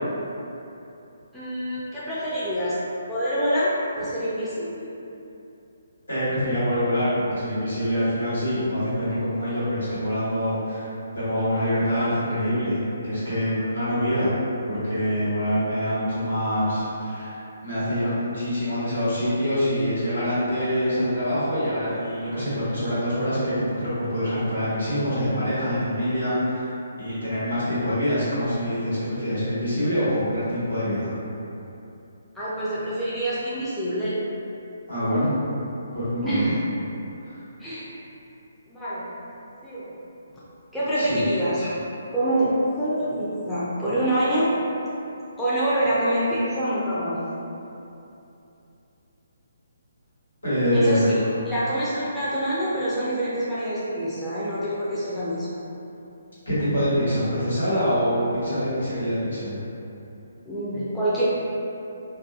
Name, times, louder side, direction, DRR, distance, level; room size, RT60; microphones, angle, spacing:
voice 1, 1.3-2.8 3.1-4.9 32.3-34.2 36.2-36.6 37.6-37.9 38.7-39.0 39.6-39.9 40.7-41.8 42.1-44.5 45.4-47.2 50.7-51.2 51.4-55.6 60.5-61.2, right 1 dB, 5° left, -13 dB, 0.4 m, -26 dB
voice 2, 6.1-14.3 14.7-17.4 17.6-26.7 27.0-31.1 34.9-35.4 35.9-36.5 37.3-37.4 41.0-41.2 50.4-51.2 56.4-59.6, equal, 75° left, -12 dB, 1.3 m, -25 dB
2.3 x 2.2 x 2.6 m, 2.8 s
figure-of-eight pair, 135°, 0 cm